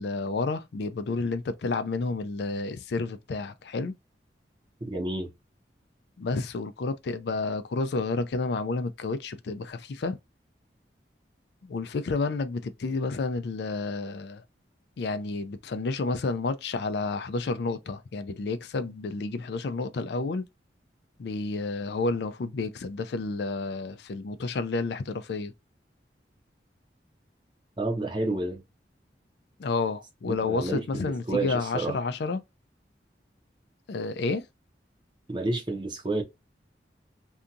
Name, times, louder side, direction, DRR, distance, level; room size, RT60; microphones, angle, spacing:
voice 1, 0.0-3.9 6.2-10.2 11.6-14.4 15.0-20.4 21.2-25.5 29.6-32.4 33.9-34.5, left 3 dB, 70° left, 0.4 m, -30 dB
voice 2, 4.8-5.3 27.8-28.6 30.2-31.9 35.3-36.2, right 2 dB, 25° right, 0.8 m, -30 dB
2.7 x 2.5 x 2.3 m
head